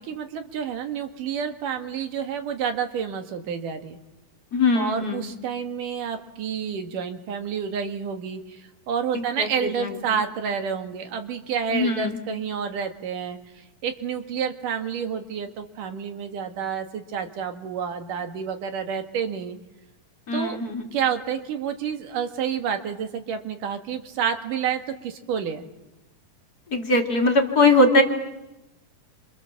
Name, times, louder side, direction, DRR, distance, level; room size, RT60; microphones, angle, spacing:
voice 1, 0.0-4.0 4.7-19.6 20.3-20.6 20.9-25.7, right 7 dB, 70° right, 7 dB, 3.3 m, -29 dB
voice 2, 4.5-5.2 9.1-9.5 11.7-12.2 20.3-20.8 26.7-28.0, left 2 dB, 30° left, 3 dB, 2.5 m, -20 dB
30.0 x 26.5 x 7.3 m, 0.94 s
omnidirectional pair, 4.0 m